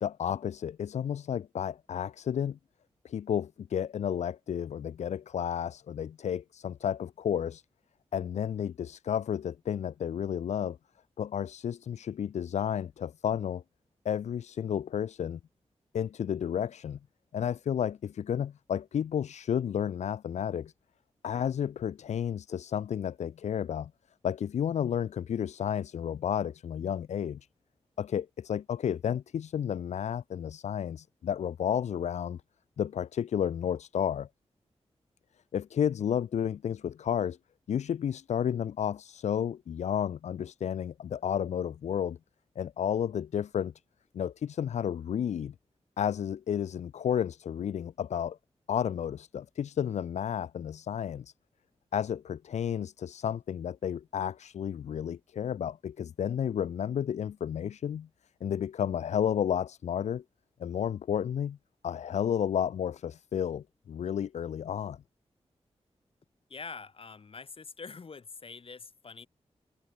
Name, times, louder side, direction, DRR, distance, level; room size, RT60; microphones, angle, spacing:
voice 1, 0.0-2.6 3.0-7.6 8.1-10.8 11.2-13.6 14.0-15.4 15.9-17.0 17.3-20.7 21.2-23.9 24.2-27.4 28.0-32.4 32.8-34.3 35.5-37.4 37.7-42.2 42.6-43.7 44.1-45.5 46.0-48.4 48.7-51.3 51.9-58.1 58.4-60.2 60.6-61.6 61.8-65.0, left 9 dB, 90° left, 0.5 m, -32 dB
voice 2, 66.5-69.3, left 5 dB, 55° left, 4.2 m, -45 dB
wide cardioid pair, 100°, 11 cm